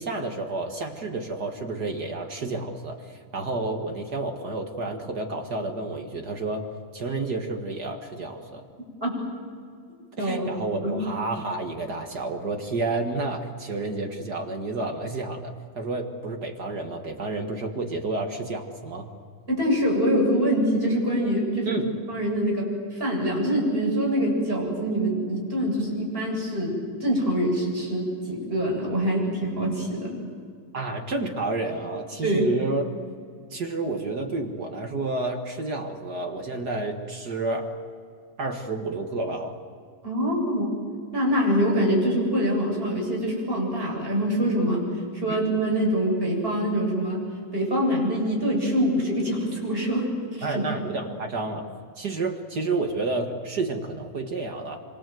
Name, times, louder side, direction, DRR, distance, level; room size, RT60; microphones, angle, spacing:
voice 1, 0.0-8.6 10.2-19.1 21.6-21.9 30.7-32.9 33.5-37.8 38.4-39.6 45.3-45.4 50.4-51.7 52.0-54.8, right 3 dB, 45° right, 3 dB, 1.3 m, -30 dB
voice 2, 10.2-11.0 19.5-21.7 22.1-26.8 27.0-30.2 32.2-32.5 40.0-40.7 41.1-44.9 45.1-47.2 47.5-50.6, equal, 15° right, -2 dB, 7.8 m, -25 dB
26.5 x 25.5 x 7.8 m, 2.2 s
omnidirectional pair, 4.2 m